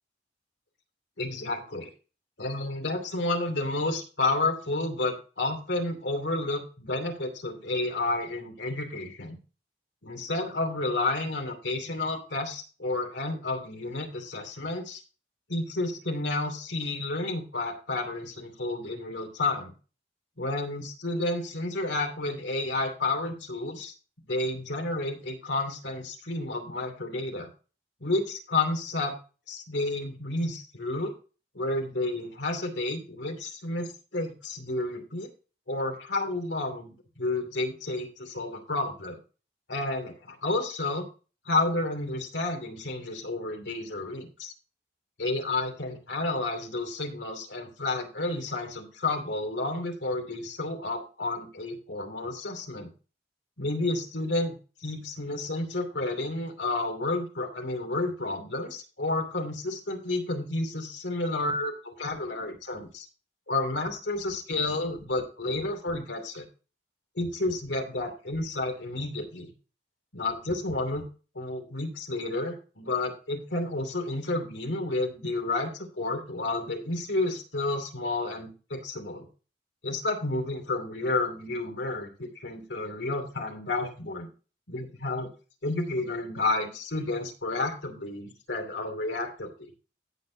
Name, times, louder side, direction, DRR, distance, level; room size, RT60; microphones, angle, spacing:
voice 1, 1.2-1.9 2.4-9.4 10.0-15.0 15.5-19.7 20.4-23.9 24.3-27.5 28.0-29.2 29.5-31.1 31.5-35.3 35.7-36.9 37.2-39.2 39.7-41.1 41.5-44.5 45.2-52.9 53.6-54.5 54.8-63.1 63.5-66.5 67.2-69.5 70.1-71.1 71.3-79.3 79.8-84.3 84.7-85.3 85.6-89.7, left 2 dB, 80° left, 4 dB, 2.7 m, -31 dB
16.0 x 6.3 x 2.8 m, 0.34 s
head